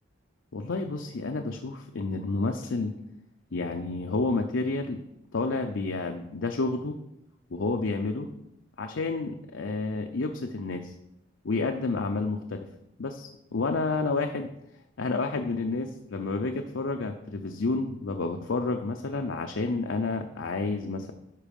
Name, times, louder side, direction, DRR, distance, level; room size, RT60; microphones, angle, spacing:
voice 1, 0.5-2.9 3.5-5.0 5.3-6.9 7.5-8.3 8.8-10.9 11.4-12.7 13.0-14.5 15.0-21.1, left 3 dB, 85° left, 4 dB, 0.6 m, -30 dB
12.0 x 4.7 x 5.3 m, 0.85 s
head